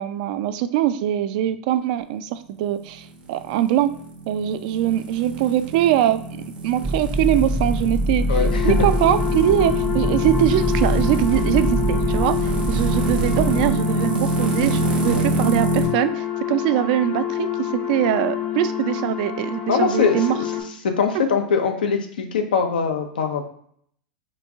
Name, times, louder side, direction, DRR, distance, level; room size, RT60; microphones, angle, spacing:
voice 1, 0.0-3.9 4.3-6.2 6.6-8.4 8.6-20.3, right 12 dB, 60° right, 11 dB, 0.3 m, -22 dB
sound 1, 3.0-15.9, right 2 dB, 85° right, 1.0 m, -27 dB
sound 2, 6.8-13.7, right 1 dB, 15° right, 0.5 m, -24 dB
voice 2, 8.3-8.9 15.1-15.3 19.7-20.5 20.8-23.5, left 5 dB, 85° left, 5 dB, 0.6 m, -22 dB
sound 3, 8.3-20.6, left 11 dB, 55° left, 1.0 m, -27 dB
3.0 x 2.6 x 3.5 m, 0.63 s
hypercardioid pair, 100°, 5 cm